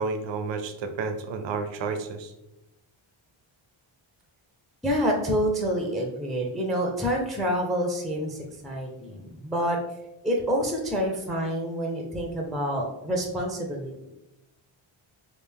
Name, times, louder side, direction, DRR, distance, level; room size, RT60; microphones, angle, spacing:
voice 1, 0.0-2.3, right 4 dB, 60° right, 7 dB, 0.6 m, -31 dB
voice 2, 4.8-9.8 10.2-13.9, equal, ahead, 0 dB, 0.5 m, -27 dB
3.4 x 2.5 x 3.4 m, 0.92 s
cardioid pair, 100°, 50 cm